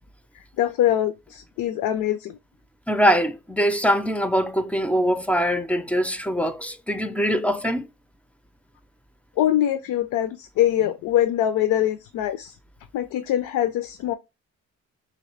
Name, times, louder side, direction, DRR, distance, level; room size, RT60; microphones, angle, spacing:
voice 1, 0.3-2.4 9.4-12.6 12.9-14.1, left 12 dB, 85° left, 0.5 m, -23 dB
voice 2, 2.9-7.9, equal, 5° left, 0.3 m, -22 dB
2.9 x 2.9 x 3.2 m
cardioid pair, 90°, 30 cm